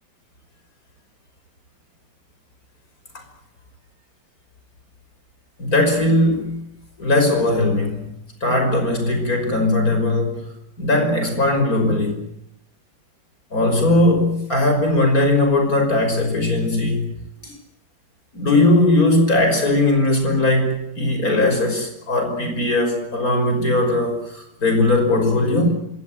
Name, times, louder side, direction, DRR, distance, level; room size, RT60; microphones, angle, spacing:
voice 1, 5.6-6.6 7.0-8.1 8.4-10.4 10.8-12.2 13.5-17.1 17.4-17.5 18.3-25.7, left 2 dB, 50° left, 5 dB, 6.2 m, -19 dB
26.5 x 17.0 x 9.4 m, 0.77 s
omnidirectional pair, 1.9 m